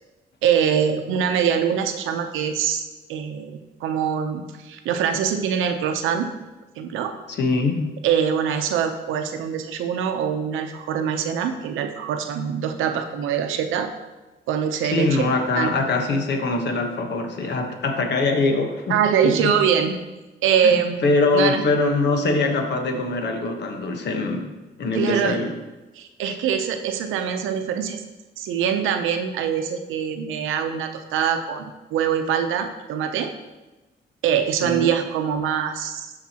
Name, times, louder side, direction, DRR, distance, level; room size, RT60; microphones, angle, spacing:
voice 1, 0.4-2.8 3.1-6.3 6.8-7.1 8.0-13.9 14.5-15.7 18.9-19.9 20.4-21.6 24.9-25.4 26.0-28.0 28.4-33.3 34.2-36.1, right 8 dB, 90° right, 6 dB, 0.7 m, -23 dB
voice 2, 7.3-8.0 14.9-19.6 20.6-24.5 24.8-25.5 26.3-26.4 34.6-34.9, left 3 dB, 60° left, 4 dB, 1.2 m, -23 dB
12.0 x 4.9 x 2.9 m, 1.1 s
cardioid pair, 90°, 20 cm